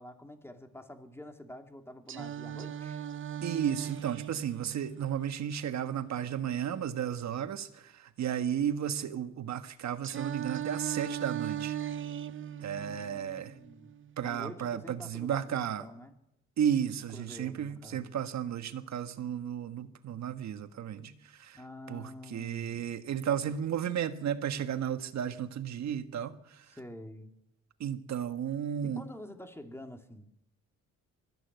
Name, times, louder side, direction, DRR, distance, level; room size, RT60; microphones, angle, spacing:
voice 1, 0.0-3.1 12.7-13.9 14.2-16.1 17.1-18.1 21.5-22.9 26.7-27.3 28.8-30.3, left 1 dB, 10° left, 2.7 m, -47 dB
Singing, 2.1-6.1 10.0-14.1, right 10 dB, 40° right, 0.8 m, -38 dB
voice 2, 3.4-11.8 12.6-13.5 14.2-15.8 16.6-21.1 21.4-21.6 21.9-22.0 22.3-26.3 27.8-29.0, right 9 dB, 65° right, 1.6 m, -33 dB
21.0 x 14.0 x 9.3 m
cardioid pair, 90°, 30 cm